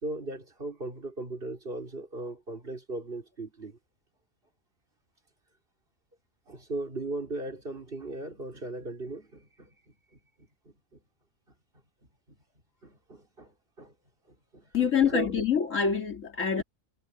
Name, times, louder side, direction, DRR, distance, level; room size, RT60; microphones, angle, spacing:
voice 1, 0.0-3.8 6.5-11.0 12.3-12.4 12.8-13.9 14.3-15.4, right 2 dB, 45° right, 3.9 m, -38 dB
voice 2, 14.7-16.6, left 7 dB, 80° left, 3.1 m, -26 dB
omnidirectional pair, 1.3 m